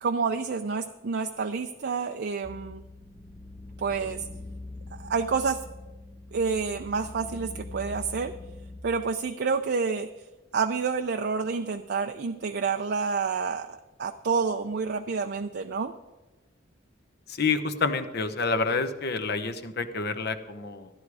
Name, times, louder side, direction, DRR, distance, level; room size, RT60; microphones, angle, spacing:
voice 1, 0.0-2.8 3.8-4.2 4.9-5.6 6.3-8.4 8.8-10.1 10.5-15.9, right 5 dB, 55° right, 7 dB, 0.5 m, -29 dB
sound 1, 2.4-8.8, left 2 dB, 10° left, 0.7 m, -43 dB
voice 2, 17.3-20.9, left 4 dB, 55° left, 10 dB, 0.9 m, -28 dB
13.5 x 10.5 x 4.8 m, 1.1 s
head